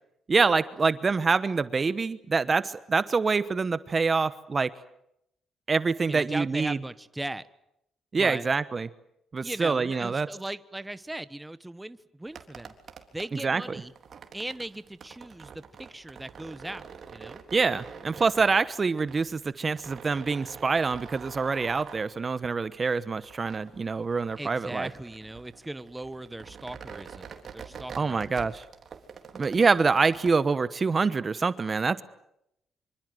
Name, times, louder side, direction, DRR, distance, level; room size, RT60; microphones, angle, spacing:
voice 1, 0.3-4.7 5.7-6.8 8.1-8.9 9.3-10.3 13.4-13.6 17.5-24.9 28.0-28.6 29.3-32.0, right 4 dB, 35° right, 15 dB, 1.1 m, -25 dB
voice 2, 6.0-7.5 8.2-8.5 9.4-12.7 13.1-13.9 14.3-17.4 24.4-28.5, right 1 dB, 10° right, 14 dB, 1.1 m, -38 dB
sound 1, 12.2-30.3, right 6 dB, 50° right, 3.7 m, -46 dB
26.0 x 25.0 x 8.0 m, 0.80 s
cardioid pair, 90°, 0 cm